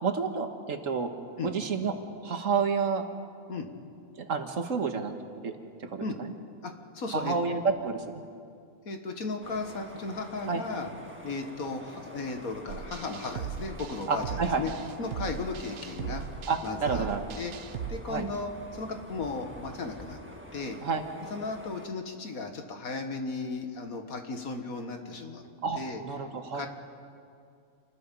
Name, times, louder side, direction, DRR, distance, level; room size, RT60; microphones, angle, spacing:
voice 1, 0.0-1.1 1.4-2.0 2.2-3.0 4.2-5.1 5.4-6.3 7.1-8.0 10.5-10.6 14.1-14.6 16.5-17.2 18.1-18.3 20.8-21.0 25.6-26.7, right 5 dB, 65° right, 6 dB, 1.8 m, -29 dB
voice 2, 6.6-7.3 8.9-10.9 11.2-14.7 15.0-16.2 16.6-17.1 17.4-17.5 17.9-20.2 20.5-20.8 21.3-25.5 25.8-26.0 26.5-26.7, left 3 dB, 85° left, 5 dB, 2.0 m, -35 dB
sound 1, 9.4-21.9, equal, 10° right, 1.5 m, -47 dB
sound 2, 12.7-18.0, right 8 dB, 90° right, 1.3 m, -38 dB
28.0 x 20.0 x 5.4 m, 2.4 s
omnidirectional pair, 1.5 m